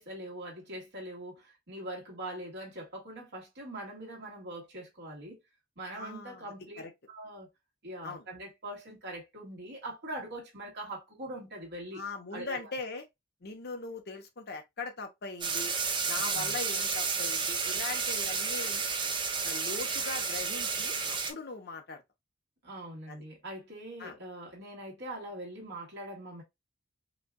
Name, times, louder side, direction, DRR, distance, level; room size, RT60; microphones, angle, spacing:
voice 1, 0.0-5.4 5.8-6.8 7.1-7.5 7.8-12.0 12.3-12.6 16.3-16.5 22.6-26.4, right 1 dB, 60° right, 2.0 m, -42 dB
voice 2, 5.9-6.5 6.8-6.9 8.0-8.2 11.9-13.0 13.4-15.7 16.1-18.8 19.4-22.0 23.1-23.2 24.0-24.2, left 3 dB, 55° left, 0.9 m, -40 dB
sound 1, 15.4-21.3, right 5 dB, 25° right, 0.8 m, -31 dB
5.0 x 2.5 x 2.3 m
head